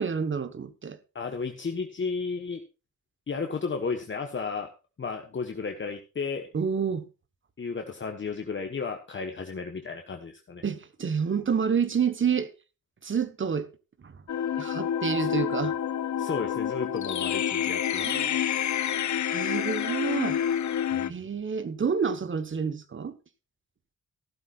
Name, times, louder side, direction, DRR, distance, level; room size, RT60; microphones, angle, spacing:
voice 1, 0.0-1.0 6.5-7.0 10.6-12.5 13.0-13.7 14.0-14.2 14.6-15.7 17.9-18.4 19.3-20.4 21.1-23.1, right 6 dB, 40° right, 1.3 m, -28 dB
voice 2, 1.1-2.6 3.3-4.7 5.0-6.5 7.6-10.6 15.2-15.3 16.2-18.4 20.9-21.1, left 5 dB, 40° left, 1.3 m, -33 dB
sound 1, 14.3-21.1, left 9 dB, 70° left, 0.7 m, -28 dB
15.0 x 12.5 x 2.5 m
wide cardioid pair, 165°, 30 cm